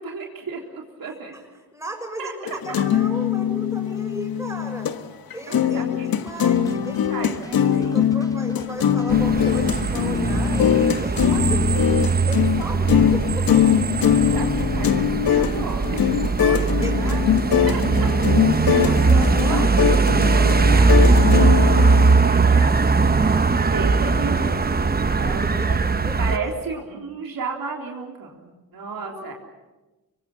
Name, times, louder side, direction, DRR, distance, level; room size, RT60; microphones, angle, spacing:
voice 1, 0.0-1.3 2.2-2.6 5.5-6.1 7.1-8.0 9.6-9.7 10.2-10.3 14.0-17.2 17.5-18.1 19.0-19.6 20.3-23.4 23.7-25.8 26.2-29.3, right 4 dB, 70° right, 0 dB, 3.7 m, -34 dB
voice 2, 1.7-4.9 5.3-11.9 12.2-13.7 16.6-17.2 18.8-19.7 25.4-26.6 29.0-29.3, right 1 dB, 10° right, 2 dB, 6.6 m, -35 dB
sound 1, 2.4-5.0 5.3-22.1, left 9 dB, 75° left, 1.4 m, -21 dB
sound 2, 6.3-12.5, equal, 10° left, 4.3 m, -45 dB
sound 3, 9.1-26.4, right 4 dB, 25° right, 1.1 m, -20 dB
25.5 x 23.5 x 7.3 m, 1.1 s
wide cardioid pair, 115°, 36 cm